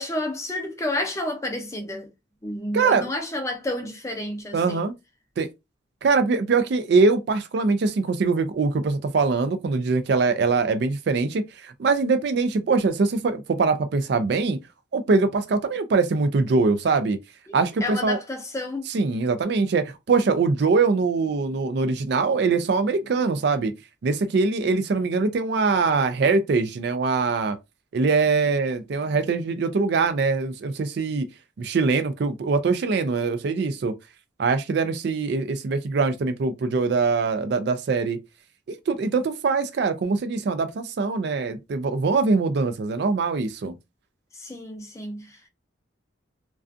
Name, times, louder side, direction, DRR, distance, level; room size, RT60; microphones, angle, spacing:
voice 1, 0.0-2.1 2.4-4.8 17.5-18.9 44.3-45.5, left 1 dB, 15° left, 0.4 m, -30 dB
voice 2, 2.7-3.0 4.5-4.9 5.4-5.5 6.0-14.6 14.9-17.2 17.5-18.2 18.9-23.7 24.0-27.6 27.9-31.3 31.6-33.9 34.4-38.2 38.9-43.7, right 4 dB, 55° right, 0.3 m, -23 dB
2.4 x 2.3 x 2.4 m
head